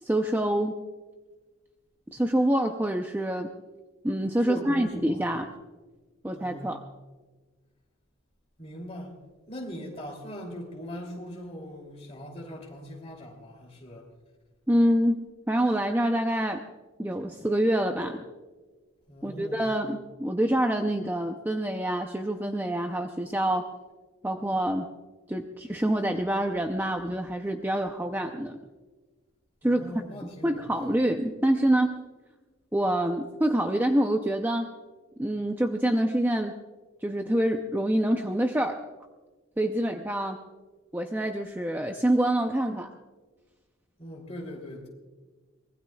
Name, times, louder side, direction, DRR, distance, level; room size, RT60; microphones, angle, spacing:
voice 1, 0.0-0.8 2.1-3.5 4.0-5.5 6.2-6.8 14.7-16.6 17.0-18.2 19.2-23.7 24.2-24.9 25.3-28.6 29.6-29.8 30.4-32.0 32.7-34.7 35.2-36.5 37.0-38.8 39.6-40.4 40.9-42.9, right 1 dB, 10° right, 0.5 m, -26 dB
voice 2, 4.4-5.2 6.3-6.7 8.6-9.2 9.5-14.1 19.1-19.7 29.6-30.9 44.0-44.9, equal, 30° left, 2.8 m, -40 dB
24.0 x 20.0 x 2.3 m
head